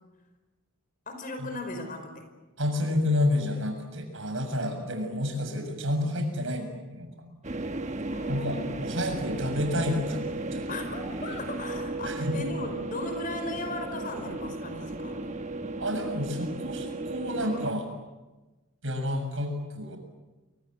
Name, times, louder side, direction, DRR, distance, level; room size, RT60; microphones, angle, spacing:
voice 1, 1.1-2.3 8.1-8.7 10.7-15.3, left 2 dB, 40° left, 6 dB, 5.0 m, -37 dB
voice 2, 2.6-7.3 8.3-10.2 10.5-10.7 11.2-11.4 12.0-12.3 15.8-17.9 18.8-20.0, left 1 dB, 60° right, 5 dB, 7.1 m, -30 dB
sound 1, 7.4-17.7, right 2 dB, 35° right, 1.3 m, -35 dB
29.5 x 24.5 x 8.1 m, 1.1 s
head